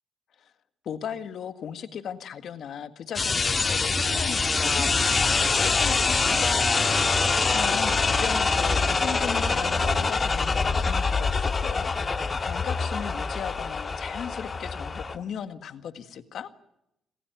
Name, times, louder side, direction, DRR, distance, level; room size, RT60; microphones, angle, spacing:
voice 1, 0.8-16.5, left 8 dB, 65° left, 10 dB, 1.8 m, -37 dB
sound 1, 3.1-15.2, left 4 dB, 35° left, 1.8 m, -25 dB
sound 2, 3.9-10.1, right 5 dB, 45° right, 2.3 m, -38 dB
27.5 x 15.5 x 9.2 m, 0.83 s
cardioid pair, 90°, 0 cm